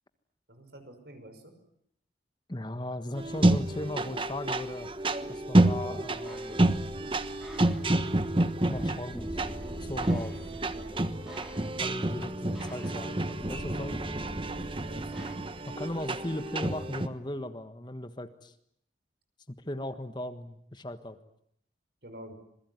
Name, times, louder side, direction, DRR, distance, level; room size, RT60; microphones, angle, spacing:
voice 1, 0.5-1.6 14.8-15.3 22.0-22.3, equal, 65° right, 8 dB, 5.9 m, -48 dB
voice 2, 2.5-4.9 5.3-6.6 8.6-9.4 9.8-10.5 11.8-14.0 15.7-18.5 19.6-21.2, left 1 dB, 25° left, 10 dB, 1.4 m, -37 dB
sound 1, 3.1-17.1, right 1 dB, 30° right, 1.3 m, -29 dB
sound 2, 6.2-15.4, equal, ahead, 4.0 m, -44 dB
27.0 x 21.0 x 9.5 m, 0.72 s
head